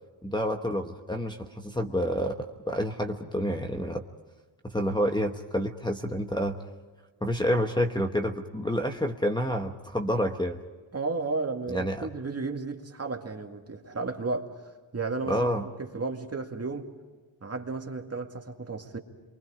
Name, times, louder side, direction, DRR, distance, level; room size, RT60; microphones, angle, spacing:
voice 1, 0.2-4.0 4.6-6.6 7.2-10.6 11.7-12.1 15.3-15.6, equal, 10° left, 0 dB, 1.1 m, -28 dB
voice 2, 10.9-14.5 14.9-15.5 15.8-16.9 17.4-19.0, right 3 dB, 30° right, 3 dB, 2.2 m, -33 dB
28.5 x 24.0 x 5.0 m, 1.4 s
wide cardioid pair, 100°, 47 cm